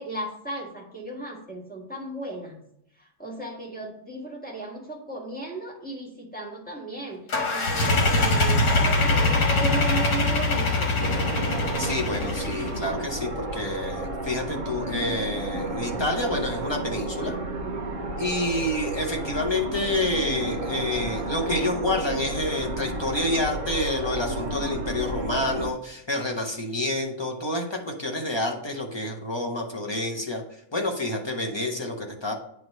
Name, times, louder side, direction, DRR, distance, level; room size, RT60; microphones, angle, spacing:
voice 1, 0.0-2.6 3.0-7.2 7.5-10.9, right 2 dB, 5° left, -2 dB, 1.3 m, -35 dB
sound 1, 7.3-12.8, left 2 dB, 90° left, 2.1 m, -23 dB
sound 2, 11.0-25.7, right 2 dB, 55° right, 1.2 m, -32 dB
voice 2, 11.8-17.3 18.2-30.4 30.7-32.3, left 1 dB, 20° left, 1 dB, 0.8 m, -28 dB
9.0 x 3.2 x 5.4 m, 0.75 s
omnidirectional pair, 1.7 m